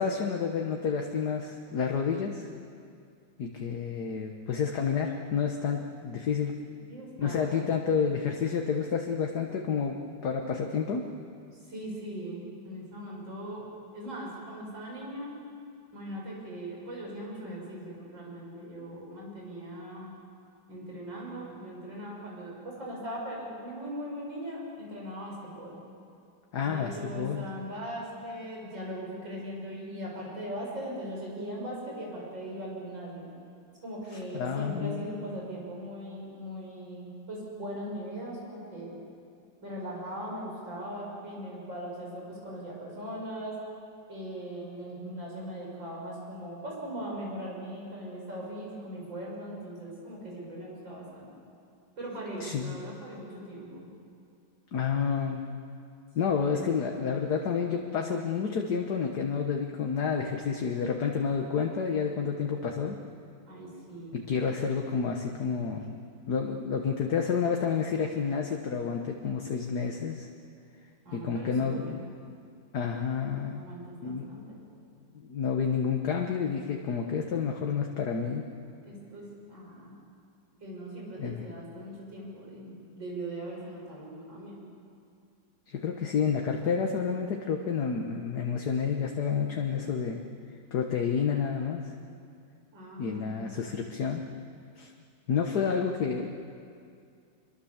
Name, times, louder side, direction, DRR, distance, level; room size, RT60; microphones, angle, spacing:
voice 1, 0.0-2.5 3.4-6.6 7.2-10.0 10.2-11.0 26.5-27.5 34.3-35.1 52.4-52.7 54.7-55.4 56.2-63.0 64.1-66.0 66.3-70.3 71.1-72.0 72.7-73.6 74.0-74.3 75.1-78.5 81.2-81.4 85.7-90.2 90.7-91.9 93.0-94.2 94.8-94.9 95.3-96.3, left 6 dB, 60° left, 2 dB, 1.8 m, -29 dB
voice 2, 6.8-8.0 11.7-13.7 13.9-15.4 15.9-20.1 20.7-25.8 26.6-33.3 33.8-39.0 39.6-43.6 44.1-51.3 52.0-53.9 56.3-56.8 63.5-64.2 71.0-72.1 73.5-74.6 78.8-79.9 80.6-84.6 92.7-93.8, right 1 dB, 75° right, -3 dB, 7.8 m, -40 dB
26.5 x 22.5 x 7.3 m, 2.4 s
omnidirectional pair, 2.0 m